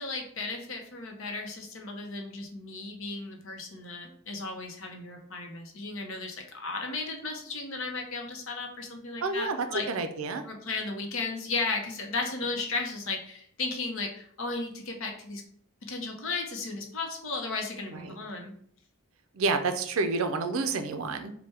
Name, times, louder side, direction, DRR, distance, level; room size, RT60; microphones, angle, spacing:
voice 1, 0.0-9.9 10.4-15.4 15.8-18.5, left 3 dB, 60° left, 2 dB, 0.7 m, -35 dB
voice 2, 9.2-10.4 17.9-18.2 19.3-21.3, right 3 dB, 65° right, 8 dB, 0.4 m, -29 dB
3.3 x 2.2 x 4.3 m, 0.63 s
head